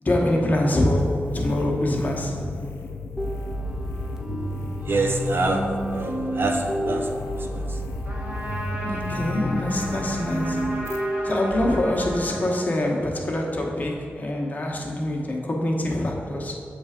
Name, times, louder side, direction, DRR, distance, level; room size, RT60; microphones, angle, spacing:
voice 1, 0.0-2.5 8.8-10.7 11.2-16.5, left 1 dB, 35° left, -1 dB, 0.9 m, -25 dB
sound 1, 1.0-11.0, left 4 dB, 90° left, 0.4 m, -36 dB
sound 2, 3.2-11.8, right 1 dB, 10° right, 0.6 m, -30 dB
voice 2, 4.8-7.8, right 2 dB, 55° right, 3 dB, 0.5 m, -27 dB
Trumpet, 8.0-13.3, equal, 40° right, 1.3 m, -35 dB
7.1 x 3.3 x 4.8 m, 2.5 s
wide cardioid pair, 105°, 4 cm